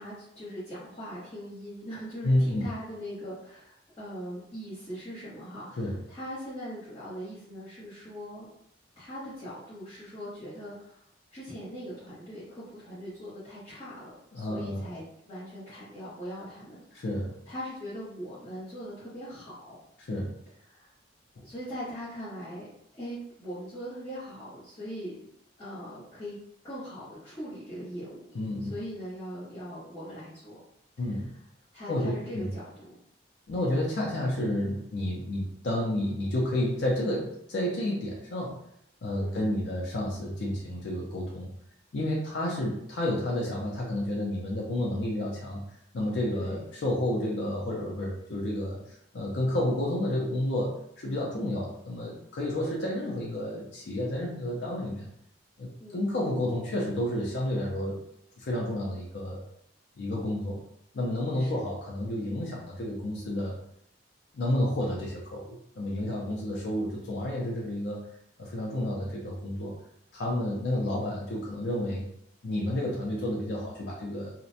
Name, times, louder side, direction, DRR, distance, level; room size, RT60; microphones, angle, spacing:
voice 1, 0.0-8.5 9.0-11.0 11.3-17.1 17.5-19.8 20.7-20.9 21.4-22.7 22.9-25.2 25.6-26.4 26.6-28.2 28.6-30.6 31.7-33.0 33.6-33.8 39.2-39.5 46.3-46.6 55.8-56.0 61.4-61.7 70.3-70.6, equal, 30° left, -14 dB, 1.0 m, -41 dB
voice 2, 2.2-2.6 5.8-6.0 14.3-14.8 16.9-17.4 20.0-20.3 28.3-28.7 31.0-31.3 31.9-32.5 33.5-38.6 39.0-41.5 41.9-45.6 45.9-55.1 55.6-58.0 58.4-59.4 60.0-60.6 60.9-63.6 64.3-68.1 68.4-69.8 70.1-72.0 72.4-74.3, left 1 dB, 70° left, -3 dB, 0.4 m, -30 dB
2.4 x 2.0 x 2.6 m, 0.75 s
head